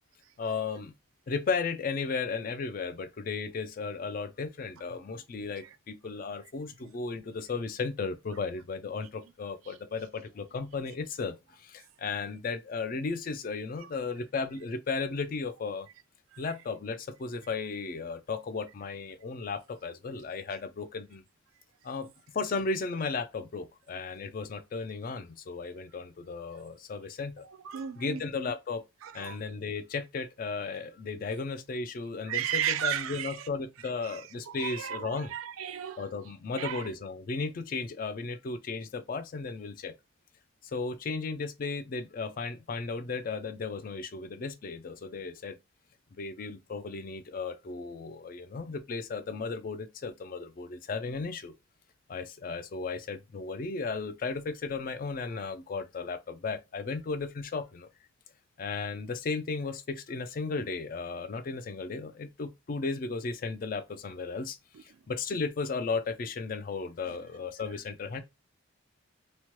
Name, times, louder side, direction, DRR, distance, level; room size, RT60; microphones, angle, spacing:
voice 1, 0.4-0.9 1.3-15.9 16.4-21.2 21.8-27.5 28.0-28.8 29.1-35.3 36.0-39.9 40.6-45.6 46.2-51.5 52.1-57.9 58.6-68.2, left 4 dB, 40° left, 0.3 m, -35 dB
voice 2, 27.5-28.2 29.0-29.4 32.2-33.5 34.0-34.2 34.5-36.1 36.5-36.8, right 10 dB, 80° right, 0.4 m, -34 dB
3.0 x 2.1 x 3.0 m
head